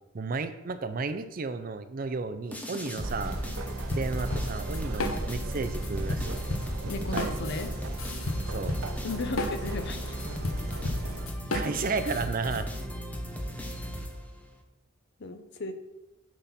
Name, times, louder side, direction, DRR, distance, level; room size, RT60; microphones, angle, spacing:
voice 1, 0.1-3.4 3.9-6.4 7.1-7.3 8.5-8.8 11.5-12.7, right 4 dB, 45° right, 10 dB, 0.5 m, -33 dB
sound 1, 2.5-14.6, equal, 5° left, 0.9 m, -36 dB
sound 2, 3.0-11.3, right 2 dB, 85° right, 0.8 m, -38 dB
sound 3, 3.9-5.6 5.8-12.6, left 2 dB, 85° left, 1.0 m, -33 dB
voice 2, 6.9-7.7 9.0-10.2 15.2-15.7, left 3 dB, 55° left, 8 dB, 0.7 m, -35 dB
9.2 x 4.1 x 5.7 m, 0.99 s
head